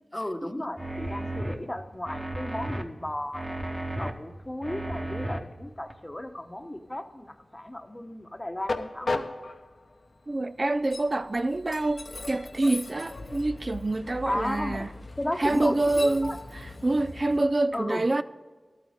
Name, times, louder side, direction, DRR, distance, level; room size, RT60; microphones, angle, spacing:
voice 1, 0.1-3.6 4.0-9.3 14.2-14.9 15.2-16.4 17.7-18.1, left 1 dB, 20° left, 0.9 m, -34 dB
Train, 0.7-17.4, left 2 dB, 60° left, 0.9 m, -40 dB
sound 1, 0.8-1.6 2.1-2.8 3.3-4.1 4.6-5.4 5.9-6.0, right 1 dB, 20° right, 1.1 m, -33 dB
voice 2, 10.3-14.9 15.4-18.2, right 2 dB, 40° right, 0.3 m, -26 dB
12.5 x 9.3 x 5.0 m
wide cardioid pair, 55°, 0 cm